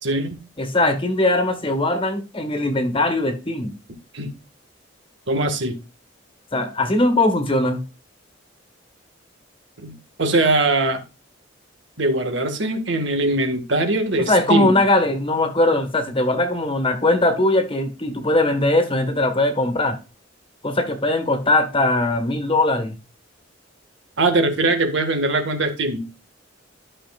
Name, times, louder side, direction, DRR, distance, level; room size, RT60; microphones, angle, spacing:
voice 1, 0.0-0.4 4.1-4.3 5.3-5.8 9.8-11.0 12.0-14.8 24.2-26.1, right 2 dB, 65° right, 1.8 m, -21 dB
voice 2, 0.6-3.7 6.5-7.8 14.2-20.0 20.6-22.9, left 2 dB, 30° left, 1.5 m, -20 dB
13.0 x 6.4 x 2.4 m
head